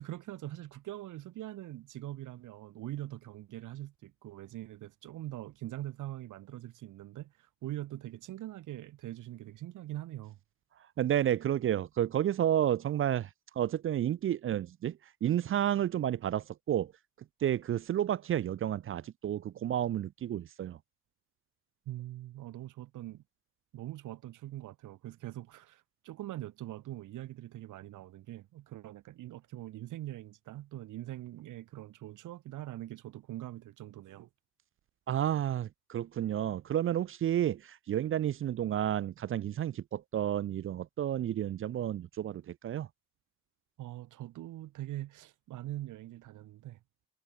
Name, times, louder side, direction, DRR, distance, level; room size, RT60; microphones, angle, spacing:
voice 1, 0.0-10.4 21.9-23.2 23.7-34.3 43.8-46.8, right 14 dB, 85° right, 3.4 m, -43 dB
voice 2, 11.0-13.3 13.6-16.9 17.4-20.8 35.1-42.9, right 11 dB, 45° right, 0.4 m, -31 dB
cardioid pair, 90°, 30 cm